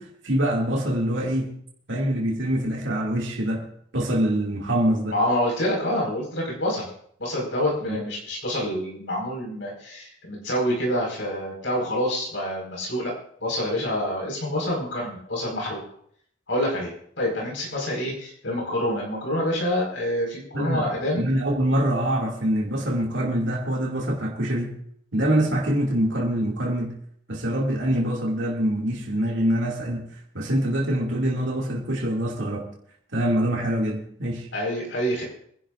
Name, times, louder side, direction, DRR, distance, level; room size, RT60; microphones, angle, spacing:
voice 1, 0.0-1.5 1.9-3.7 3.9-5.2 7.9-8.0 20.5-20.9 21.2-24.8 25.1-26.9 27.3-30.1 30.3-32.7 33.1-34.5, right 1 dB, 80° right, 2.5 m, -24 dB
voice 2, 5.1-6.9 7.2-13.1 13.4-15.8 16.5-21.2 34.5-35.2, left 1 dB, 85° left, 5.0 m, -27 dB
25.5 x 11.5 x 2.6 m
head